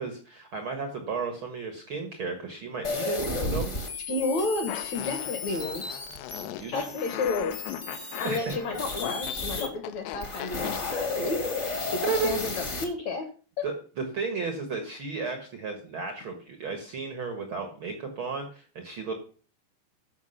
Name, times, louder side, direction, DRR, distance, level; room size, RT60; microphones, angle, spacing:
voice 1, 0.0-4.0 6.4-6.7 8.2-8.5 12.0-12.5 13.6-19.1, right 4 dB, 90° right, 5 dB, 1.1 m, -33 dB
sound 1, 2.8-9.7 10.1-12.8, left 3 dB, 45° left, 0.9 m, -33 dB
voice 2, 4.1-6.0 6.7-7.6 8.2-11.4 11.9-13.3 13.6-13.7, left 3 dB, 65° left, 7 dB, 1.9 m, -31 dB
Fart, 4.7-10.8, left 12 dB, 80° left, 2.8 m, -39 dB
13.5 x 5.9 x 5.6 m, 0.40 s
omnidirectional pair, 4.8 m